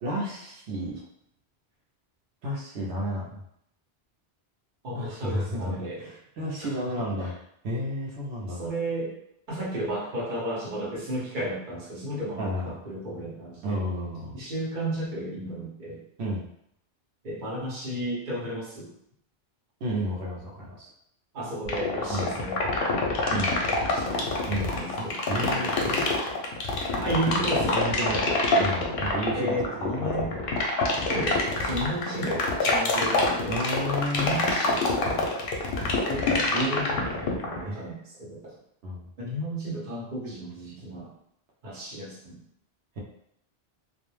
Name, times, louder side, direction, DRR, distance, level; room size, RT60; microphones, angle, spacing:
voice 1, 0.0-1.0 2.4-3.4 4.9-7.3 7.6-8.6 12.4-12.7 13.6-14.4 16.2-16.4 19.8-20.9 22.1-22.3 23.3-23.5 24.5-26.1 27.7-28.3 28.6-30.4 33.5-34.4 37.6-37.9 38.8-39.0 40.7-40.8, equal, 90° right, -4 dB, 0.9 m, -32 dB
voice 2, 4.8-6.1 6.6-7.3 8.5-9.1 9.5-13.8 14.3-16.0 17.2-18.9 21.3-23.1 23.6-24.3 24.8-26.0 27.0-28.4 29.3-30.4 31.1-33.5 34.2-35.3 36.1-38.5 39.2-41.1 41.6-42.4, right 1 dB, 50° right, -6 dB, 1.0 m, -33 dB
sound 1, 21.6-37.6, left 3 dB, 65° left, 0.7 m, -25 dB
2.3 x 2.1 x 3.0 m, 0.72 s
omnidirectional pair, 1.1 m